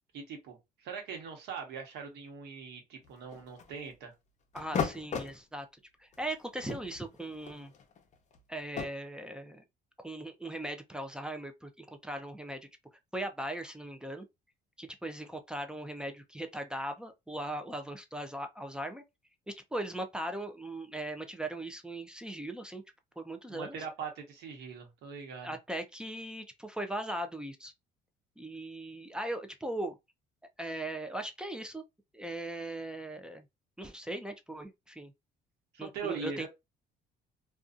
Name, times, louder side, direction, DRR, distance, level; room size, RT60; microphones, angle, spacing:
voice 1, 0.1-4.1 23.5-25.6 35.7-36.5, right 5 dB, 80° right, 1.1 m, -41 dB
sound 1, 3.0-3.9 4.6-5.4 6.1-6.3 6.6-8.9, left 6 dB, 45° left, 0.7 m, -36 dB
voice 2, 4.5-5.7 6.0-7.7 8.5-9.6 10.0-12.6 13.1-14.3 14.8-19.0 19.5-22.8 23.2-23.8 25.4-27.7 28.4-30.0 30.6-31.8 32.1-33.4 33.8-35.1 35.8-36.5, right 1 dB, 5° right, 0.4 m, -39 dB
2.5 x 2.3 x 2.4 m
cardioid pair, 110°, 17 cm